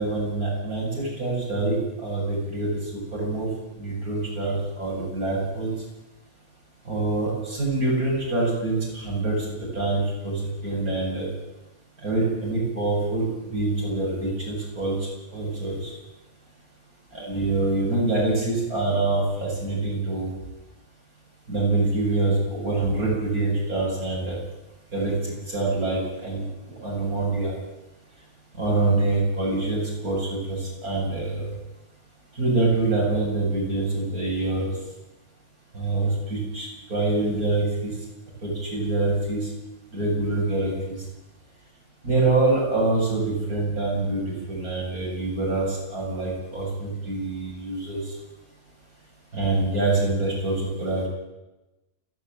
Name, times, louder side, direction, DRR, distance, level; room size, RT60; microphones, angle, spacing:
voice 1, 0.0-3.5 3.8-5.7 6.8-11.3 12.0-15.0 15.3-15.9 17.1-20.3 21.5-24.4 24.9-25.1 25.5-26.4 26.8-27.5 28.5-31.5 32.3-34.7 35.7-37.9 38.4-39.5 39.9-41.0 42.0-48.1 49.3-51.1, right 2 dB, 85° right, -4 dB, 8.5 m, -25 dB
29.5 x 9.9 x 9.2 m, 1.0 s
omnidirectional pair, 1.5 m